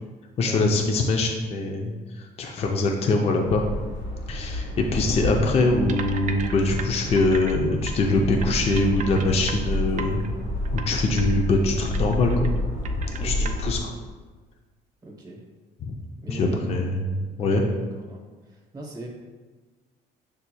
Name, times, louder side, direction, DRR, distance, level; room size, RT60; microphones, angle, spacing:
voice 1, 0.4-3.6 4.3-10.3 10.7-12.5 13.2-13.8 15.8-16.0 16.3-17.0 17.4-17.6, left 2 dB, 40° left, 2 dB, 0.4 m, -23 dB
sound 1, 3.5-13.8, left 1 dB, 75° left, 1.4 m, -29 dB
sound 2, 5.9-7.6 7.9-8.0 8.4-10.3 10.6-10.9 11.2-11.3 11.6-12.6 12.8-13.5, right 6 dB, 45° right, 0.4 m, -36 dB
voice 2, 13.2-14.0 15.0-15.4 16.2-16.8 17.4-19.1, equal, 20° right, -2 dB, 0.9 m, -39 dB
6.6 x 2.9 x 2.2 m, 1.3 s
cardioid pair, 110°, 17 cm